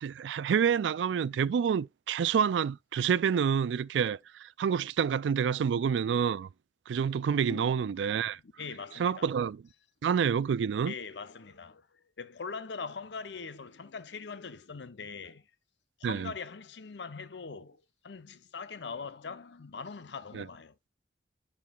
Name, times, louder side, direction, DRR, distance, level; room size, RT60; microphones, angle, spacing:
voice 1, 0.0-6.5 6.9-8.4 9.0-9.6 10.0-10.9 16.0-16.3 20.3-20.5, right 7 dB, 90° right, 0.3 m, -28 dB
voice 2, 7.5-7.8 8.6-9.3 10.8-15.5 16.0-20.7, left 5 dB, 75° left, 0.7 m, -42 dB
10.5 x 4.6 x 2.3 m
head